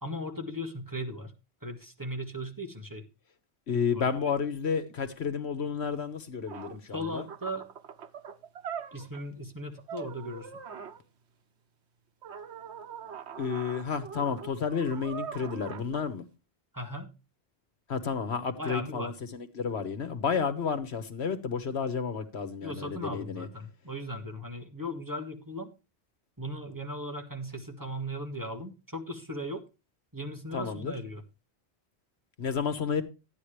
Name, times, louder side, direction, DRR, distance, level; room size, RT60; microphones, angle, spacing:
voice 1, 0.0-1.3 1.6-3.1 3.9-4.3 6.9-7.6 8.9-10.5 16.7-17.1 18.6-19.1 22.6-25.7 26.4-29.6 30.1-31.2, equal, 20° right, 1.6 m, -37 dB
voice 2, 3.7-7.2 13.4-16.2 17.9-23.5 30.5-30.9 32.4-33.0, left 6 dB, 80° left, 1.5 m, -31 dB
sound 1, 6.2-6.3 6.5-9.2 9.8-11.0 12.2-16.0, right 7 dB, 80° right, 1.2 m, -42 dB
13.0 x 9.5 x 3.2 m
omnidirectional pair, 1.1 m